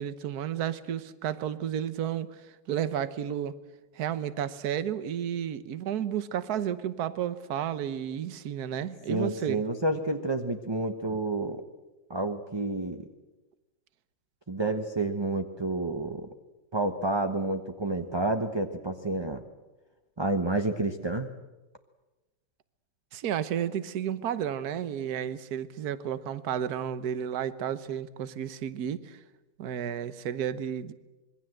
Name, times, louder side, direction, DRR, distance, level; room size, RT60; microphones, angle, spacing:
voice 1, 0.0-2.4 2.7-3.5 3.9-9.6 23.1-29.2 29.6-30.9, right 9 dB, 55° right, 13 dB, 1.5 m, -32 dB
voice 2, 9.1-11.6 12.1-13.0 14.5-16.3 16.7-19.4 20.2-21.3, right 2 dB, 20° right, 5 dB, 0.8 m, -29 dB
26.0 x 22.5 x 7.9 m, 1.1 s
omnidirectional pair, 2.1 m